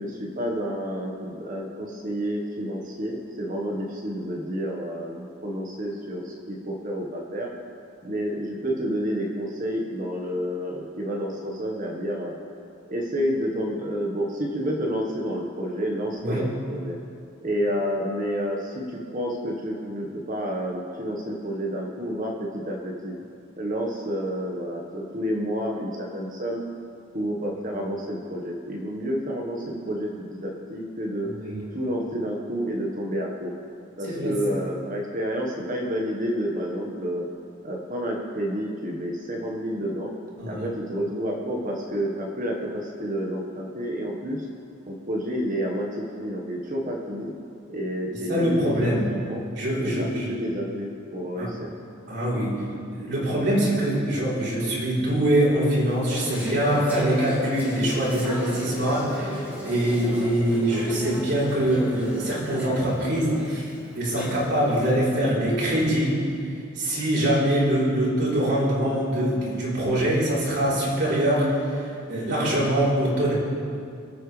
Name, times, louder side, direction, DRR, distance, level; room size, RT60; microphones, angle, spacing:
voice 1, 0.0-7.5 8.0-12.3 12.9-16.9 17.4-18.8 19.1-23.1 23.6-26.6 27.1-31.3 31.7-33.5 34.0-37.2 37.6-40.1 40.5-44.5 44.9-47.3 47.7-48.5 48.8-49.0 49.2-49.4 49.8-51.7, equal, 40° right, -1 dB, 1.4 m, -29 dB
voice 2, 31.3-31.6 34.0-34.3 40.4-40.7 48.3-49.0 49.5-50.3 51.4-51.5 52.1-52.5 52.9-66.1 66.8-73.3, right 1 dB, 55° right, -6 dB, 3.9 m, -24 dB
Conversation / Chatter, 55.9-64.8, equal, 10° right, 2.8 m, -36 dB
24.5 x 9.0 x 3.3 m, 2.5 s
head